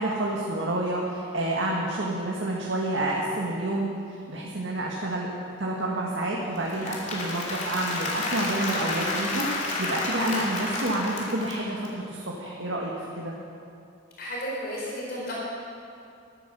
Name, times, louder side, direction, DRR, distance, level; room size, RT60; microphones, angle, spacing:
voice 1, 0.0-5.3 5.6-13.3, right 1 dB, 75° right, -3 dB, 1.8 m, -29 dB
Applause / Crowd, 6.5-11.9, left 2 dB, 40° left, 2.9 m, -31 dB
voice 2, 14.2-15.3, equal, 55° left, -5 dB, 4.3 m, -33 dB
14.0 x 12.5 x 6.9 m, 2.6 s
head